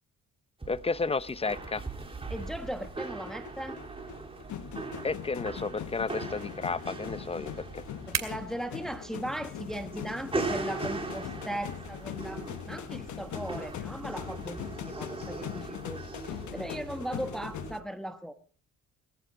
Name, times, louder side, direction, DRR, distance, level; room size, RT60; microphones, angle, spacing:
sound 1, 0.6-17.8, right 3 dB, 20° right, 3.6 m, -40 dB
voice 1, 0.7-1.8 5.0-7.8, left 4 dB, 20° left, 16 dB, 0.7 m, -32 dB
sound 2, 1.9-13.8, right 9 dB, 60° right, 2.6 m, -46 dB
voice 2, 2.3-3.8 8.1-18.3, right 1 dB, ahead, 8 dB, 1.1 m, -38 dB
sound 3, 2.4-17.8, left 11 dB, 75° left, 1.1 m, -41 dB
19.5 x 14.0 x 3.8 m, 0.41 s
cardioid pair, 90°, 30 cm